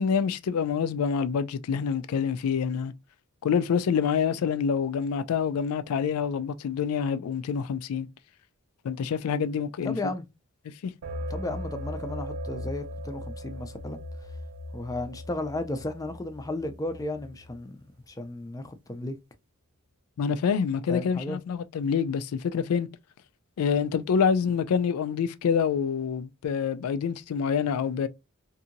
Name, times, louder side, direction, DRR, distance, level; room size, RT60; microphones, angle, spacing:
voice 1, 0.0-2.9 3.4-8.1 8.8-10.1 10.8-10.9 20.2-22.9 23.6-28.1, left 6 dB, 90° left, 0.3 m, -26 dB
voice 2, 9.8-10.2 11.3-14.0 14.7-17.8 18.1-19.2 20.9-21.4, left 2 dB, 15° left, 0.4 m, -34 dB
sound 1, 11.0-17.5, equal, 65° right, 0.4 m, -38 dB
2.8 x 2.6 x 2.5 m
head